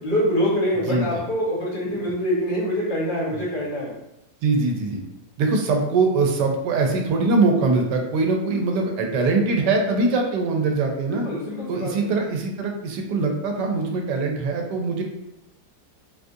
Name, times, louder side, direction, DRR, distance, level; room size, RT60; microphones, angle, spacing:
voice 1, 0.0-3.9 11.2-12.1, equal, 40° left, -6 dB, 0.9 m, -25 dB
voice 2, 4.4-5.0 5.4-11.3 11.7-15.0, right 3 dB, 80° right, 2 dB, 1.2 m, -22 dB
3.8 x 2.4 x 2.6 m, 0.88 s
omnidirectional pair, 1.8 m